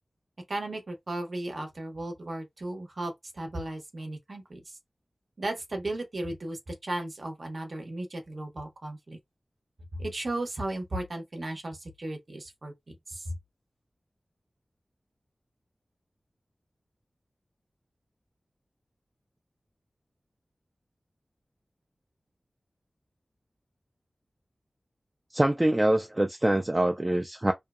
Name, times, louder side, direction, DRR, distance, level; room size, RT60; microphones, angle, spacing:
voice 1, 0.5-4.7 5.4-9.2 9.9-13.4, right 1 dB, 60° right, 0.8 m, -35 dB
voice 2, 25.3-27.5, right 1 dB, 25° right, 0.3 m, -24 dB
2.7 x 2.1 x 2.4 m
wide cardioid pair, 70°, 0 cm